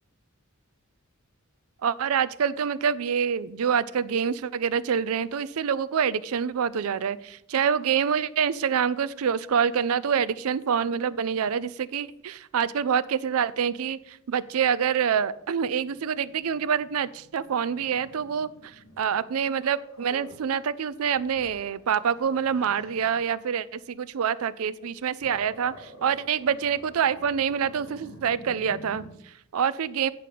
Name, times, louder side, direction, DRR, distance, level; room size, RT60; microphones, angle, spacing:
voice 1, 1.8-30.1, right 7 dB, 75° right, 17 dB, 0.4 m, -26 dB
Growling, 14.4-20.5 20.9-23.3 24.7-29.1, equal, 75° left, 2.6 m, -49 dB
9.3 x 4.9 x 5.8 m, 0.76 s
head